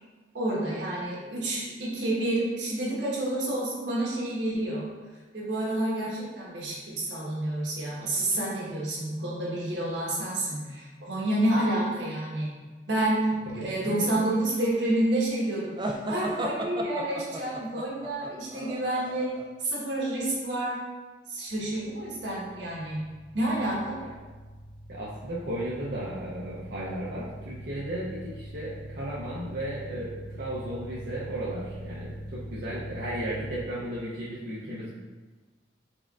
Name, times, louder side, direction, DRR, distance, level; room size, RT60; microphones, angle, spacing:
voice 1, 0.3-4.9 5.3-12.5 12.9-20.8 21.3-23.0 23.3-24.0, right 1 dB, 80° right, -5 dB, 1.3 m, -29 dB
voice 2, 13.6-14.2 24.0-24.1 24.9-34.9, right 1 dB, 60° right, -8 dB, 0.6 m, -35 dB
sound 1, 15.8-19.4, right 1 dB, 25° right, 0.3 m, -34 dB
sound 2, 21.5-33.6, equal, 5° left, 1.0 m, -43 dB
4.3 x 3.6 x 2.4 m, 1.3 s
head